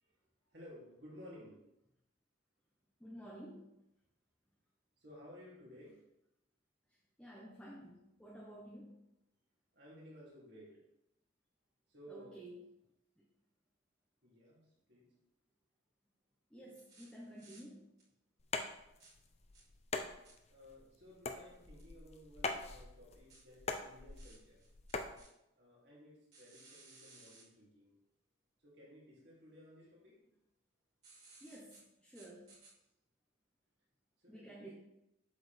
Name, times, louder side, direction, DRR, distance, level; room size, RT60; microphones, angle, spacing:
voice 1, 0.5-1.6 5.0-6.0 9.7-10.8 11.9-12.4 14.2-15.1 20.5-24.6 25.6-27.9 28.6-30.2 34.2-34.7, equal, 55° right, -5 dB, 3.0 m, -56 dB
voice 2, 3.0-3.7 7.2-9.0 12.1-12.7 16.5-17.8 31.4-32.5 34.3-34.7, right 1 dB, 5° left, -5 dB, 1.1 m, -52 dB
sound 1, 16.8-17.6 18.0-18.1 19.0-19.1 19.5-19.6 20.2-20.3 21.8-21.9 23.3-25.3 26.3-27.4 31.0-31.8 32.1-32.7, right 3 dB, 35° right, 3.0 m, -60 dB
sound 2, 18.4-25.2, left 3 dB, 30° left, 0.6 m, -43 dB
8.1 x 6.9 x 3.5 m, 0.84 s
head